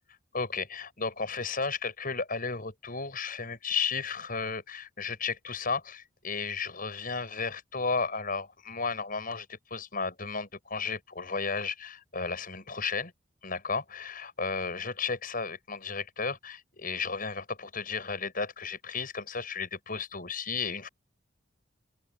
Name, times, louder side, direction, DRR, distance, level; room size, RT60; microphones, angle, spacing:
voice 1, 0.3-13.1 13.4-20.9, left 5 dB, 45° left, 7.0 m, -33 dB
open air
head